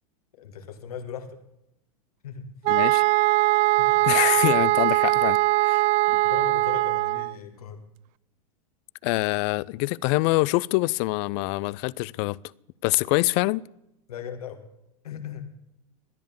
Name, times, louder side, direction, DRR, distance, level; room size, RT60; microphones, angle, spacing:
voice 1, 0.4-1.4 2.2-2.5 3.7-4.0 6.2-7.8 14.1-14.6 15.0-15.4, left 8 dB, 85° left, 2.0 m, -38 dB
sound 1, 2.6-7.3, right 20 dB, 45° right, 0.4 m, -21 dB
voice 2, 2.7-3.0 4.0-6.2 9.0-12.4 12.8-13.6, left 22 dB, 55° left, 0.5 m, -25 dB
13.5 x 10.5 x 7.1 m
hypercardioid pair, 105°, 19 cm